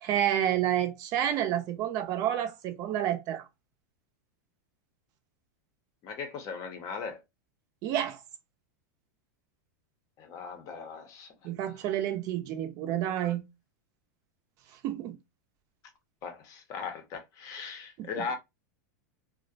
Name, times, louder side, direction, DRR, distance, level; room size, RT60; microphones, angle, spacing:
voice 1, 0.0-3.4 7.8-8.2 11.4-13.4 14.8-15.2 18.0-18.2, right 11 dB, 40° right, 0.5 m, -29 dB
voice 2, 6.0-7.2 10.2-11.3 16.2-18.4, left 5 dB, 40° left, 0.6 m, -38 dB
2.4 x 2.0 x 2.6 m
supercardioid pair, 140°, 10 cm